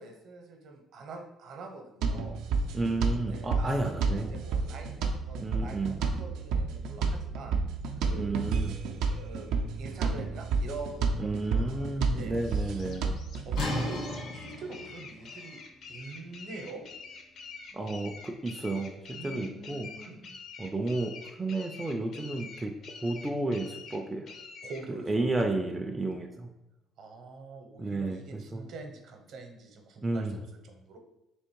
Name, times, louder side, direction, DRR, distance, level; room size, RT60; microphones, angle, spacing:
voice 1, 0.0-2.4 3.3-3.8 4.1-7.5 8.0-13.1 13.5-14.0 14.3-15.6 15.9-16.8 19.1-20.4 24.6-25.1 25.3-25.5 27.0-31.0, right 3 dB, 60° right, 4 dB, 0.7 m, -45 dB
sound 1, 2.0-13.6, right 4 dB, 85° right, 0.4 m, -31 dB
voice 2, 2.7-4.3 5.4-6.0 8.2-8.8 11.2-13.1 17.7-19.9 20.6-22.7 23.0-24.3 25.1-26.5 27.8-28.6 30.0-30.5, right 2 dB, 15° right, 2 dB, 0.3 m, -32 dB
sound 2, 12.4-24.8, left 5 dB, 55° left, 0.5 m, -46 dB
sound 3, 13.5-19.2, left 1 dB, 75° left, 1.6 m, -39 dB
3.5 x 2.9 x 4.5 m, 0.90 s
cardioid pair, 135°, 0 cm